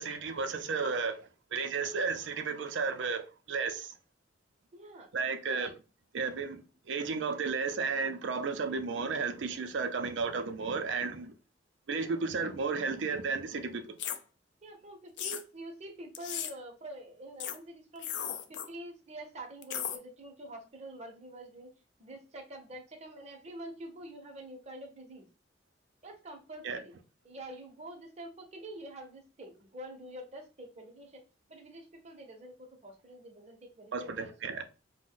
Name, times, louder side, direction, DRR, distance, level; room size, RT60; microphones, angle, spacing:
voice 1, 0.0-4.0 5.1-5.7 6.1-6.6 6.9-11.3 11.9-14.0 26.6-26.8 33.9-34.6, right 4 dB, 85° right, 0.4 m, -33 dB
voice 2, 4.7-5.1 5.5-5.7 14.6-18.1 18.5-21.7 22.0-25.2 26.0-26.9 27.2-31.2 31.5-34.3, right 1 dB, 35° right, 0.7 m, -46 dB
sound 1, 14.0-14.2 15.2-15.4 16.1-16.5 17.4-17.6 18.0-18.7 19.6-20.0, left 9 dB, 70° left, 0.4 m, -36 dB
2.5 x 2.1 x 3.6 m
head